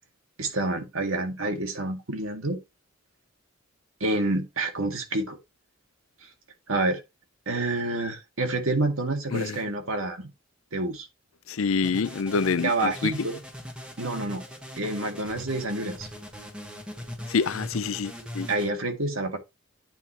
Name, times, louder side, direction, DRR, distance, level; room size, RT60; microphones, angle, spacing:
voice 1, 0.4-2.6 4.0-5.4 6.7-7.0 7.5-10.3 10.7-11.1 12.6-13.4 14.0-14.4 14.8-16.1 18.5-19.4, right 2 dB, 75° right, 1.9 m, -28 dB
voice 2, 9.3-9.6 11.5-13.1 17.3-18.5, left 5 dB, 70° left, 0.5 m, -27 dB
sound 1, 11.8-18.7, equal, 5° right, 1.3 m, -40 dB
9.2 x 5.1 x 3.0 m
head